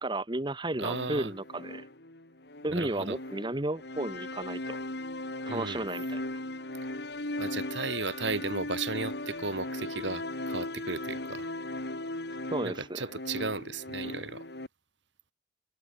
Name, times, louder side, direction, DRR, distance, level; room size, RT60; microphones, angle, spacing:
voice 1, 0.0-1.9 2.6-4.8 5.5-6.2 12.5-13.0, right 2 dB, 25° right, 1.4 m, -33 dB
sound 1, 0.8-14.7, left 1 dB, 65° left, 3.9 m, -38 dB
voice 2, 0.8-1.3 2.7-3.2 5.5-5.8 7.4-11.5 12.6-14.4, right 3 dB, 85° right, 3.2 m, -35 dB
head